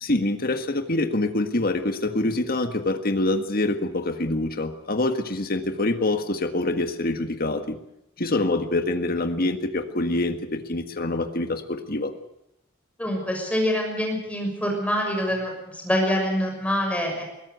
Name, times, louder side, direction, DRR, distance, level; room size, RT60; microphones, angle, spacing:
voice 1, 0.0-7.8 8.2-12.1, left 2 dB, 50° left, 7 dB, 1.7 m, -25 dB
voice 2, 13.0-17.2, equal, 5° left, 1 dB, 6.5 m, -25 dB
22.0 x 16.5 x 8.2 m, 0.86 s
head